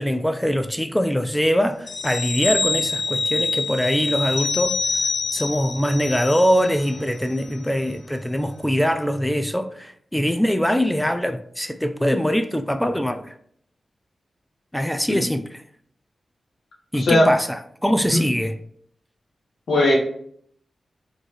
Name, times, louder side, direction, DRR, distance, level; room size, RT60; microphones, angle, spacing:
voice 1, 0.0-4.8 5.3-13.3 14.7-15.6 16.9-18.6, equal, 5° left, 0.3 m, -22 dB
sound 1, 1.9-7.0 7.3-7.5, left 3 dB, 65° left, 0.5 m, -26 dB
voice 2, 16.9-17.3 18.1-18.2 19.7-19.9, left 1 dB, 80° left, 1.3 m, -18 dB
4.3 x 3.2 x 3.0 m
cardioid pair, 75°, 0 cm